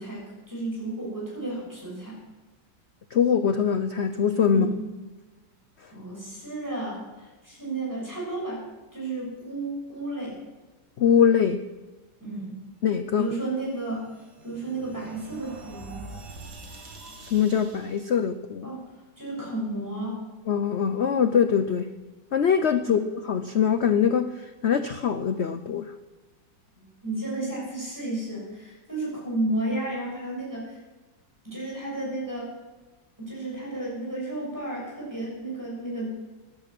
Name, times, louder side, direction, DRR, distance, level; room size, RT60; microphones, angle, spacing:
voice 1, 0.0-2.2 4.5-4.8 5.9-8.6 8.9-10.4 12.2-12.6 13.1-14.0 14.4-16.0 18.6-18.8 19.2-20.2 22.8-23.0 26.8-30.8 31.4-32.5 33.2-36.2, right 2 dB, 10° right, -4 dB, 6.8 m, -32 dB
voice 2, 3.1-4.7 11.0-11.6 12.8-13.3 17.3-18.7 20.5-21.9 22.3-23.0 23.3-24.3 24.6-25.9, left 7 dB, 90° left, 10 dB, 0.5 m, -22 dB
sound 1, 13.6-18.1, right 3 dB, 60° right, 2.5 m, -45 dB
15.5 x 11.5 x 6.1 m, 1.2 s
omnidirectional pair, 2.0 m